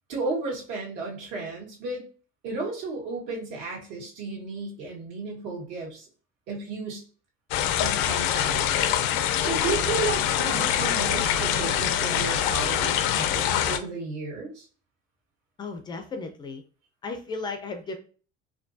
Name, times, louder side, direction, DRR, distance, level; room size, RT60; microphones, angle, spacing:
voice 1, 0.1-2.1 2.4-6.1 6.5-7.0 7.8-8.8 9.4-14.7, right 4 dB, 75° right, -2 dB, 1.8 m, -33 dB
sound 1, 7.5-13.8, left 10 dB, 80° left, 0.5 m, -24 dB
voice 2, 15.6-16.6 17.0-17.9, left 3 dB, 20° left, 6 dB, 0.4 m, -35 dB
4.4 x 2.6 x 2.6 m, 0.40 s
cardioid pair, 170°, 20 cm